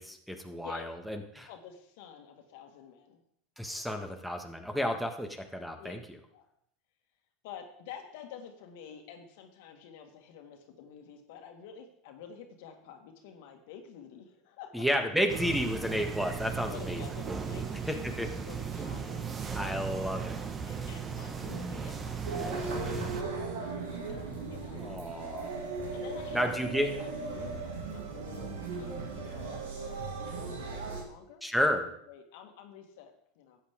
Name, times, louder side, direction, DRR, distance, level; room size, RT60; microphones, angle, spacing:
voice 1, 0.0-1.5 3.6-6.0 14.7-17.0 17.9-18.3 19.5-20.4 24.7-25.5 26.3-26.9 31.4-31.9, equal, ahead, 5 dB, 1.5 m, -31 dB
voice 2, 1.5-3.2 3.6-3.8 5.8-6.0 6.3-6.5 7.4-14.8 15.4-15.5 16.5-19.6 20.7-24.8 25.9-31.4 31.8-33.6, left 8 dB, 70° left, 4 dB, 1.8 m, -49 dB
sound 1, 15.3-23.2, right 6 dB, 30° right, 1.4 m, -36 dB
sound 2, 22.3-31.0, right 3 dB, 85° right, 2.5 m, -37 dB
13.0 x 8.5 x 3.7 m, 0.70 s
hypercardioid pair, 90°, 0 cm